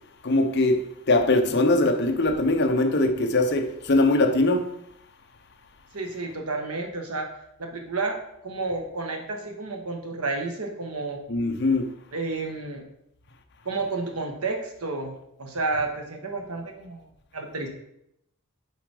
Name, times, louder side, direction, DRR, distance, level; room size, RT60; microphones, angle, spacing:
voice 1, 0.2-4.8 11.3-11.9, left 2 dB, 50° left, 0.8 m, -22 dB
voice 2, 5.9-7.3 7.6-8.2 8.4-11.2 12.1-12.9 13.6-17.0 17.3-17.7, right 3 dB, 85° right, 1.4 m, -31 dB
7.0 x 5.0 x 4.9 m
head